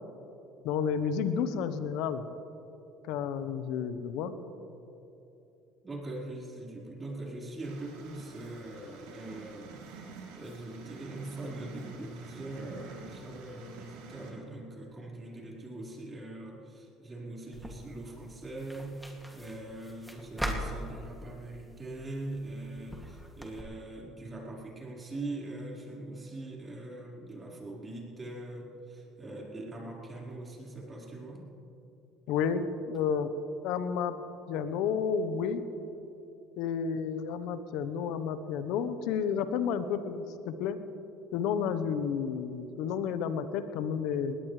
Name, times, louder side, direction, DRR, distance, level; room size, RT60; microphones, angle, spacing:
voice 1, 0.6-2.2 3.1-4.3 32.3-33.3 33.6-34.1 34.5-35.6 36.6-40.8 41.3-44.4, left 7 dB, 70° left, 11 dB, 1.0 m, -31 dB
voice 2, 5.8-10.1 10.3-31.4, right 2 dB, 25° right, -3 dB, 4.6 m, -42 dB
sound 1, 7.6-14.3, right 5 dB, 80° right, 2.8 m, -49 dB
sound 2, 17.5-23.6, equal, 5° right, 2.4 m, -41 dB
20.5 x 18.0 x 3.3 m, 2.9 s
supercardioid pair, 80°, 0 cm